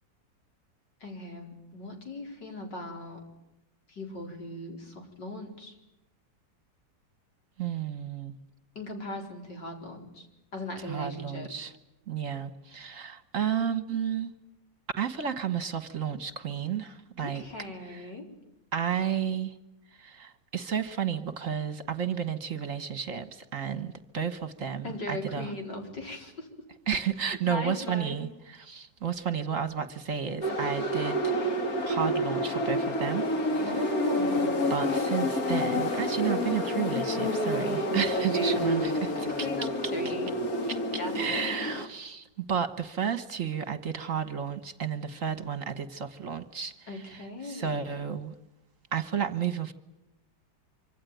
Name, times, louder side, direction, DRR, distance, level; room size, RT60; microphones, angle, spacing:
voice 1, 1.0-3.2 3.9-5.8 8.8-10.3 10.5-11.5 17.2-18.3 24.8-26.5 27.4-28.2 33.6-34.6 38.1-38.6 39.2-40.3 40.9-41.1 41.5-41.7 46.9-48.0, left 2 dB, 75° left, 5.3 m, -38 dB
voice 2, 7.6-8.4 10.8-11.7 12.1-14.3 15.0-17.4 17.9-18.0 18.7-19.6 19.9-25.5 26.9-31.2 31.8-33.9 34.7-39.3 40.0-40.1 40.7-40.8 41.1-48.3 48.9-49.7, right 7 dB, 50° right, 1.6 m, -32 dB
sound 1, 30.4-41.9, equal, 55° left, 2.5 m, -29 dB
25.5 x 25.0 x 9.3 m
omnidirectional pair, 1.9 m